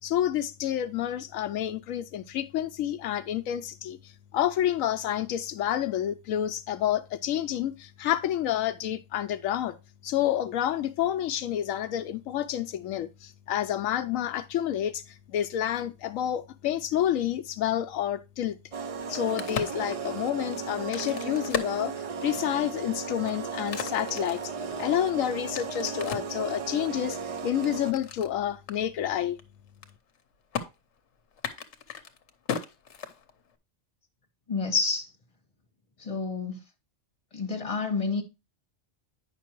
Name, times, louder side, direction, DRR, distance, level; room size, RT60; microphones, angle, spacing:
voice 1, 0.0-9.8 10.0-15.0 15.3-18.6 19.1-24.5 24.8-27.2 27.4-29.4, left 11 dB, 85° left, 1.0 m, -29 dB
sound 1, 18.7-27.9, right 6 dB, 60° right, 0.3 m, -36 dB
Crack, 18.9-22.6 23.1-26.4 27.0-28.3 28.7-28.8 29.1-29.4 29.7-30.2 30.5-30.7 31.3-33.6, left 7 dB, 65° left, 1.1 m, -36 dB
voice 2, 34.5-35.1 36.0-36.6 37.3-38.2, left 4 dB, 25° left, 1.5 m, -29 dB
9.2 x 5.8 x 2.9 m
omnidirectional pair, 1.4 m